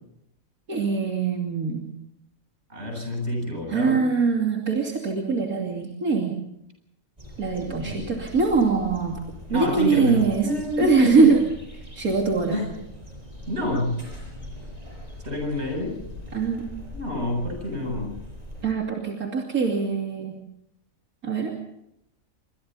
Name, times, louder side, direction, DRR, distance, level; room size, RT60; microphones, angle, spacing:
voice 1, 0.7-1.9 3.7-6.4 7.4-9.2 9.5-10.5 10.8-11.4 12.0-12.6 16.3-16.7 18.6-20.4 21.2-21.5, right 4 dB, 85° right, 0 dB, 3.2 m, -22 dB
voice 2, 2.7-4.0 7.8-8.3 9.5-11.3 12.5-12.7 13.5-14.0 15.2-15.9 16.9-18.1, left 1 dB, 50° right, 2 dB, 8.4 m, -28 dB
sound 1, 7.2-18.7, equal, 25° right, 7.0 m, -41 dB
27.0 x 25.5 x 4.1 m, 0.79 s
omnidirectional pair, 1.5 m